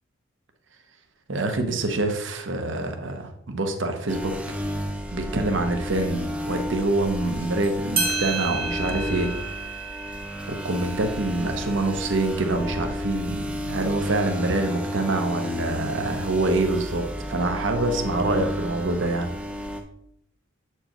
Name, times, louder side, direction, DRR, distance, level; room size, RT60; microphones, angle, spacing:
voice 1, 1.3-4.4 5.1-9.3 10.5-19.3, right 2 dB, 65° right, 5 dB, 0.7 m, -26 dB
sound 1, 4.1-19.8, left 1 dB, 5° right, 0.5 m, -32 dB
sound 2, 7.6-7.7 8.0-13.0, right 4 dB, 25° right, 0.9 m, -32 dB
7.8 x 4.5 x 2.9 m, 0.72 s
head